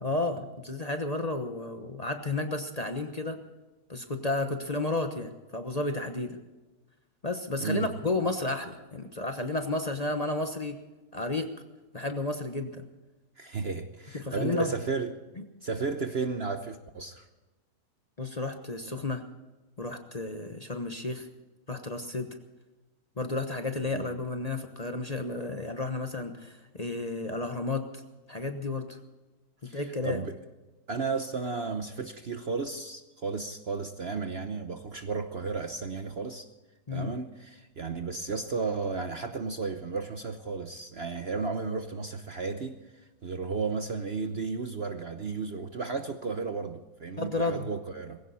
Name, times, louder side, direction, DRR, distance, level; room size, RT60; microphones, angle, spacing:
voice 1, 0.0-3.4 3.9-6.4 7.2-10.8 11.1-11.5 11.9-12.8 14.1-14.7 18.2-19.2 19.8-21.3 21.7-22.4 23.2-28.0 28.3-29.0 29.7-30.2 36.9-37.1 47.2-47.7, left 2 dB, 25° left, 1.0 m, -32 dB
voice 2, 7.6-7.9 13.4-15.2 15.6-17.3 23.9-24.1 29.6-30.4 30.9-36.5 36.9-42.8 43.2-48.2, right 4 dB, 45° right, 0.9 m, -33 dB
20.0 x 16.5 x 4.2 m
omnidirectional pair, 1.8 m